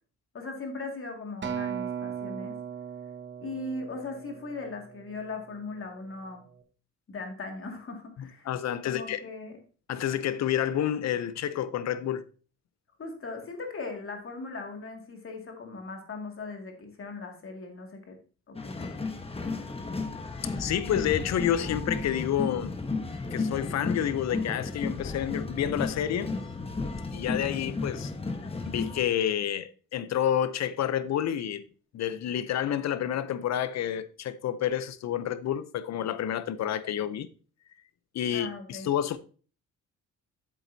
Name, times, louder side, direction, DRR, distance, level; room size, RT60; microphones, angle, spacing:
voice 1, 0.3-2.6 3.4-6.4 7.1-8.5 8.8-9.6 13.0-18.2 18.5-18.9 38.3-38.9, left 3 dB, 45° left, 2.2 m, -39 dB
Acoustic guitar, 1.4-5.8 6.5-6.6, right 8 dB, 40° right, 1.2 m, -38 dB
voice 2, 8.2-9.2 9.9-12.2 20.4-22.7 23.3-26.3 27.1-28.1 28.7-31.6 31.9-37.3 38.1-39.2, left 10 dB, 60° left, 0.7 m, -29 dB
sound 1, 18.6-29.0, left 3 dB, 20° left, 1.1 m, -33 dB
8.3 x 7.3 x 2.7 m
cardioid pair, 90°, 30 cm